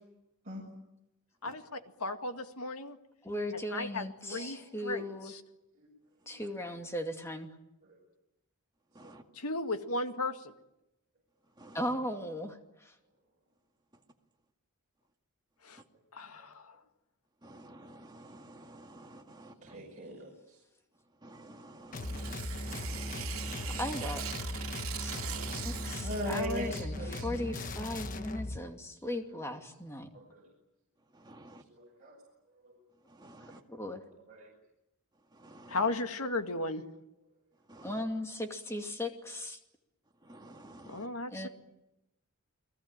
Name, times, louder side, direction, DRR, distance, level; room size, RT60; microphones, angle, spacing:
voice 1, 1.4-3.0 3.7-5.4 9.4-10.5 15.6-15.8 16.1-16.7 35.7-36.8 40.9-41.5, left 2 dB, 85° left, 7 dB, 2.1 m, -35 dB
voice 2, 3.2-5.3 6.3-7.5 11.7-12.9 23.8-24.3 25.0-25.2 25.6-30.1 33.7-34.0 37.8-39.6 41.3-41.5, left 1 dB, 10° left, 4 dB, 2.5 m, -37 dB
voice 3, 17.4-19.5 21.2-22.3 22.7-23.8 25.4-25.8 31.2-31.6 33.2-33.6 35.4-35.8 37.7-37.9 40.3-41.1, right 1 dB, 20° right, 2 dB, 2.2 m, -51 dB
voice 4, 19.6-20.3 26.0-27.4 30.1-30.4 31.8-32.1 34.3-34.4, equal, 35° right, -3 dB, 7.0 m, -38 dB
sound 1, 21.9-28.6, left 1 dB, 35° left, 1.2 m, -38 dB
Tearing, 21.9-26.8, right 10 dB, 70° right, 3.0 m, -42 dB
30.0 x 20.0 x 9.0 m, 0.91 s
head